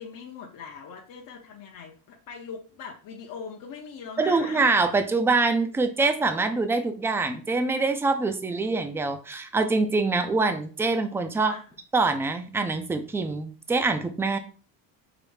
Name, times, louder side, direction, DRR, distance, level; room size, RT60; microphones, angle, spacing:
voice 1, 0.0-4.6 11.5-11.7, left 6 dB, 50° left, 0 dB, 0.7 m, -41 dB
voice 2, 4.2-11.6 11.9-14.4, right 3 dB, 5° right, 8 dB, 0.3 m, -24 dB
4.8 x 2.0 x 3.2 m, 0.38 s
cardioid pair, 100°, 41 cm